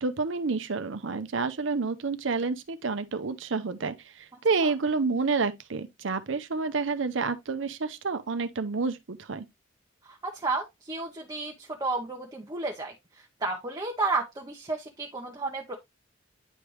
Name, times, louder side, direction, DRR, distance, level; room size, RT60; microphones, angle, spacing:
voice 1, 0.0-9.4, right 4 dB, 70° right, 0.7 m, -29 dB
voice 2, 10.1-12.9 13.4-15.7, right 3 dB, 20° right, 0.8 m, -32 dB
9.8 x 3.3 x 3.1 m
head